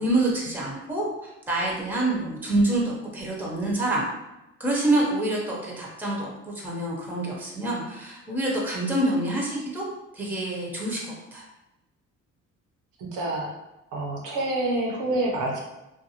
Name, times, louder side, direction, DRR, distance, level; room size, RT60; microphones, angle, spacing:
voice 1, 0.0-4.0 4.6-9.8 10.1-11.0 11.3-11.4, right 1 dB, 5° right, -3 dB, 0.7 m, -26 dB
voice 2, 13.0-13.5 13.9-15.6, right 2 dB, 85° right, -1 dB, 0.8 m, -27 dB
2.5 x 2.3 x 2.8 m, 0.94 s
cardioid pair, 90°, 30 cm